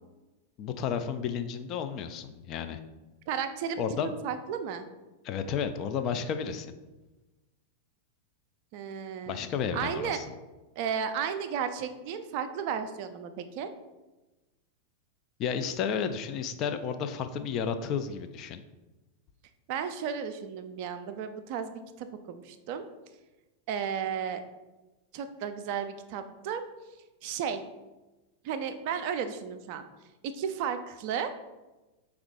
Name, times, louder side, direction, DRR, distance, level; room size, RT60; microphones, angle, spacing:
voice 1, 0.6-2.8 3.8-4.1 5.2-6.7 9.3-10.2 15.4-18.6, left 7 dB, 35° left, 8 dB, 0.3 m, -32 dB
voice 2, 3.3-4.8 8.7-9.5 9.7-10.2 10.8-13.7 19.7-22.8 23.7-24.4 25.1-26.6 27.2-27.6 28.4-29.8 30.2-31.3, right 7 dB, 45° right, 9 dB, 0.3 m, -34 dB
5.2 x 2.3 x 3.5 m, 1.1 s
figure-of-eight pair, 90°, 0 cm